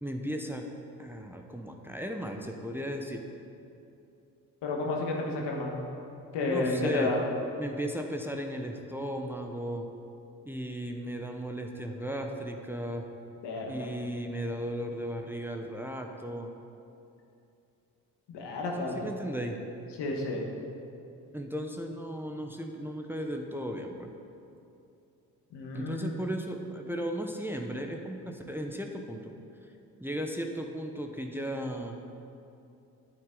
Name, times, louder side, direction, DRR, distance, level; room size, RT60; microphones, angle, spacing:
voice 1, 0.0-0.6 1.0-3.2 6.4-7.1 7.6-9.9 10.5-13.1 13.7-16.5 18.9-19.6 21.3-24.1 25.7-29.3 30.0-32.0, equal, 5° right, 3 dB, 0.9 m, -36 dB
voice 2, 4.6-5.8 6.3-7.2 13.4-13.9 18.3-19.1 20.0-20.5 25.5-26.1, left 2 dB, 70° left, 0 dB, 1.6 m, -31 dB
9.5 x 8.7 x 3.9 m, 2.6 s
hypercardioid pair, 45°, 43 cm